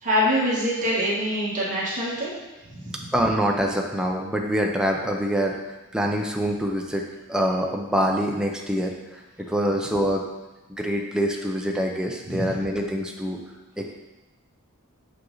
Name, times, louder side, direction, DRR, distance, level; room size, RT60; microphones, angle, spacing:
voice 1, 0.0-2.3 2.7-3.1 12.2-12.5, equal, 35° right, -7 dB, 1.5 m, -25 dB
voice 2, 3.1-5.6 5.9-10.3 10.7-13.4 13.8-13.9, equal, 5° right, 0 dB, 0.6 m, -25 dB
6.4 x 5.8 x 3.9 m, 1.1 s
head